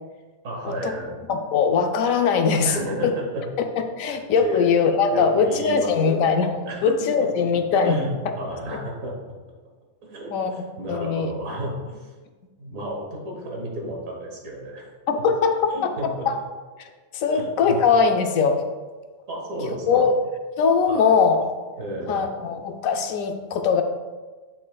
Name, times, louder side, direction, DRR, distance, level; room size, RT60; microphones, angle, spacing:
voice 1, 0.4-1.2 2.6-3.4 4.1-4.7 5.1-6.4 6.6-6.9 7.4-7.5 7.8-9.1 10.0-12.1 12.6-14.9 15.7-16.3 17.3-17.8 19.3-20.1 20.9-21.1 21.8-22.2, right 1 dB, 75° right, -1 dB, 1.7 m, -32 dB
voice 2, 1.3-2.7 3.0-3.1 4.0-6.5 6.8-8.0 10.3-10.5 10.9-11.3 15.1-16.4 16.8-18.6 19.9-20.2 20.6-21.5 22.1-23.8, left 5 dB, 80° left, 6 dB, 1.0 m, -21 dB
7.6 x 5.5 x 2.3 m, 1.3 s
omnidirectional pair, 1.4 m